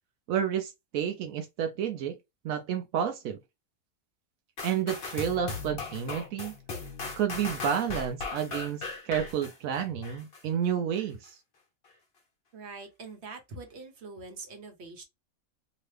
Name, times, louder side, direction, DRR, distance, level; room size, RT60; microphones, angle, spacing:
voice 1, 0.3-2.2 2.4-3.4 4.6-6.5 7.2-11.4, right 8 dB, 80° right, 1.0 m, -30 dB
sound 1, 4.6-10.4 10.9-11.0, left 3 dB, 50° left, 1.0 m, -38 dB
voice 2, 12.5-15.0, right 3 dB, 55° right, 1.2 m, -44 dB
2.9 x 2.7 x 3.2 m
omnidirectional pair, 1.4 m